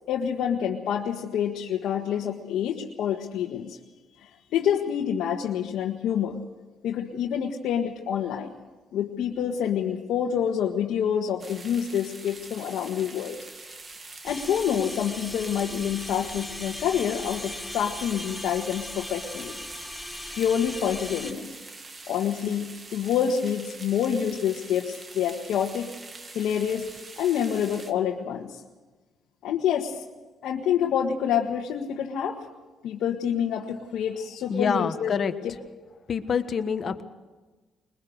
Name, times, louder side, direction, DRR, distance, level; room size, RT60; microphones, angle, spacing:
voice 1, 0.1-3.8 4.2-6.4 6.8-8.5 8.9-13.4 14.2-19.6 20.3-21.5 22.1-25.9 26.3-26.9 27.2-28.6 29.4-30.0 30.4-32.4 32.8-35.1 35.4-35.6, left 8 dB, 80° left, -1 dB, 1.6 m, -27 dB
sound 1, 11.4-27.9, right 3 dB, 35° right, 1.9 m, -44 dB
sound 2, 14.3-21.3, left 1 dB, 5° left, 1.4 m, -39 dB
voice 2, 34.5-35.3 36.1-37.0, left 6 dB, 50° left, 9 dB, 1.4 m, -26 dB
22.0 x 21.5 x 6.5 m, 1.2 s
cardioid pair, 90°, 0 cm